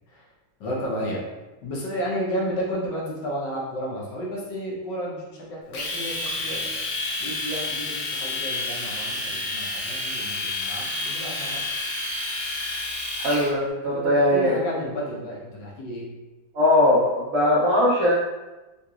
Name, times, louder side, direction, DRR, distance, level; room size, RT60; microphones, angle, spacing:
voice 1, 0.6-1.3 1.6-6.7 7.2-11.6 13.8-16.1, equal, 70° left, -4 dB, 1.4 m, -32 dB
Domestic sounds home sounds, 5.7-13.5, left 2 dB, 90° left, 1.5 m, -30 dB
voice 2, 13.2-14.5 16.5-18.1, left 1 dB, 70° right, -6 dB, 0.7 m, -20 dB
3.8 x 2.8 x 2.3 m, 1.1 s
omnidirectional pair, 2.1 m